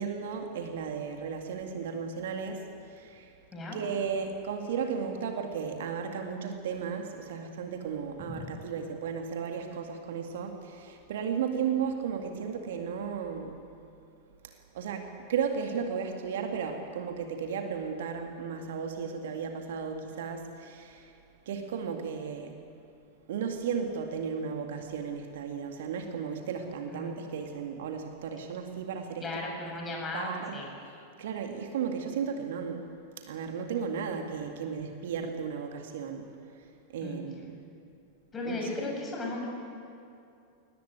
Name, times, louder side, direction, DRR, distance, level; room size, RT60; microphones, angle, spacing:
voice 1, 0.0-2.6 2.9-3.3 3.7-13.6 14.4-21.1 21.5-22.6 23.3-30.6 31.2-32.9 33.3-36.3 36.9-37.6 38.4-38.9, right 6 dB, 55° right, 4 dB, 2.1 m, -35 dB
voice 2, 29.2-30.7 37.0-37.2 38.3-39.5, left 2 dB, 20° left, 0 dB, 7.5 m, -36 dB
22.0 x 19.0 x 9.4 m, 2.5 s
figure-of-eight pair, 90°, 0 cm